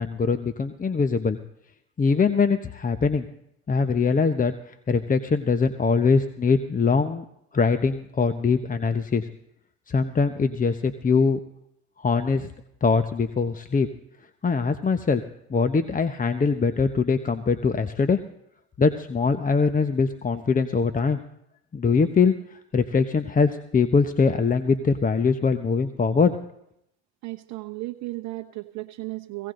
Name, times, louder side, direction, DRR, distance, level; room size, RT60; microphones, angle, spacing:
voice 1, 0.0-1.4 2.0-3.3 3.7-7.2 7.5-9.3 9.9-11.4 12.0-12.5 12.8-13.9 14.4-15.2 15.5-18.2 18.8-21.2 21.7-26.4, left 5 dB, 30° left, 10 dB, 1.1 m, -22 dB
voice 2, 27.2-29.5, right 20 dB, 70° right, 3 dB, 0.9 m, -35 dB
17.0 x 17.0 x 3.9 m, 0.76 s
hypercardioid pair, 70°, 30 cm